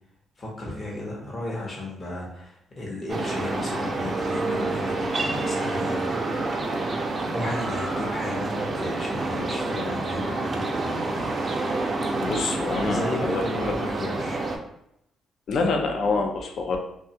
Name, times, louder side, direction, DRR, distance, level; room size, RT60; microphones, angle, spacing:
voice 1, 0.4-11.1 12.7-14.4, left 1 dB, 40° left, -3 dB, 0.8 m, -34 dB
sound 1, 3.1-14.6, right 2 dB, 40° right, 0.4 m, -28 dB
voice 2, 12.2-13.7 15.5-16.8, left 3 dB, 65° left, 3 dB, 0.5 m, -26 dB
2.6 x 2.3 x 2.8 m, 0.78 s
cardioid pair, 90°, 0 cm